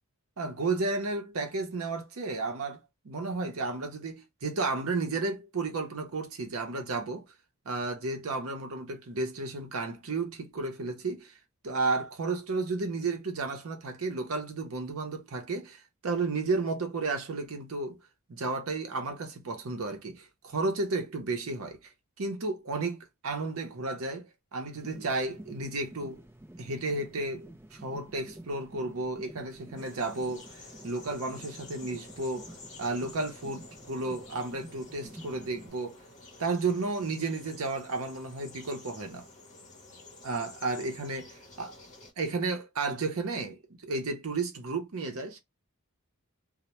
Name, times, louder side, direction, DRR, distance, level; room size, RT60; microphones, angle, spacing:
voice 1, 0.4-2.8 3.0-7.2 7.7-11.4 11.6-18.0 18.3-21.9 22.2-26.2 26.6-30.5 30.8-36.0 36.4-39.3 40.2-41.3 41.6-41.7 42.2-45.4, right 3 dB, 70° right, 0.6 m, -33 dB
sound 1, 24.7-35.7, right 1 dB, 10° right, 0.4 m, -50 dB
sound 2, 29.8-42.1, left 2 dB, 35° left, 0.8 m, -51 dB
2.1 x 2.1 x 2.8 m
head